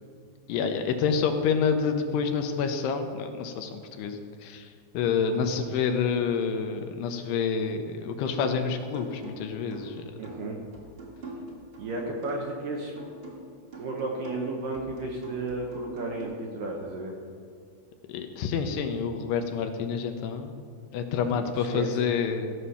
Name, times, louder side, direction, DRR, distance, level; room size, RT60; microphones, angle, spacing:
voice 1, 0.5-4.7 4.9-10.1 18.1-20.6 20.9-22.5, left 6 dB, 80° left, 6 dB, 2.7 m, -28 dB
sound 1, 8.2-8.6 8.9-12.6 13.0-16.2, right 1 dB, 40° right, 1.6 m, -44 dB
voice 2, 10.2-10.6 11.8-12.9 13.7-17.1 21.3-21.9, right 2 dB, 70° right, 0 dB, 2.1 m, -33 dB
14.5 x 6.2 x 5.6 m, 2.3 s
omnidirectional pair, 4.9 m